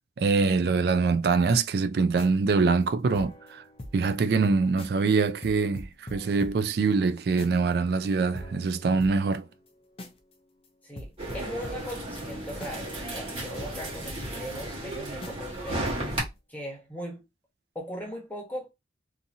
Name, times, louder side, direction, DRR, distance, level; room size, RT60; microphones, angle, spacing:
voice 1, 0.2-3.6 3.9-9.5, right 4 dB, 60° right, 0.3 m, -24 dB
sound 1, 2.0-4.2 4.4-4.5 4.8-5.1 5.4-7.7 8.0-8.1 8.4-10.3 10.6-10.7 11.0-14.9 15.2-15.6 15.9-16.4, left 1 dB, 30° left, 0.5 m, -44 dB
voice 2, 10.8-16.2 16.5-17.2 17.7-18.7, equal, 10° left, 1.0 m, -39 dB
sound 2, 11.2-16.2, right 1 dB, 30° right, 1.2 m, -34 dB
2.7 x 2.6 x 2.7 m
head